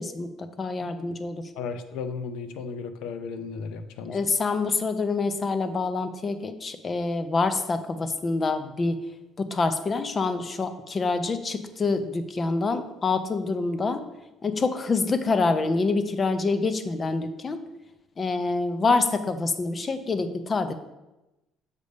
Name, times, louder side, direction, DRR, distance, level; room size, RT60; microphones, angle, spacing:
voice 1, 0.0-1.4 4.1-9.0 9.4-14.0 14.4-17.6 18.2-20.7, left 3 dB, 25° left, 10 dB, 0.5 m, -26 dB
voice 2, 1.6-4.2, left 5 dB, 80° left, 10 dB, 0.5 m, -34 dB
6.6 x 3.4 x 5.2 m, 0.99 s
cardioid pair, 135°, 0 cm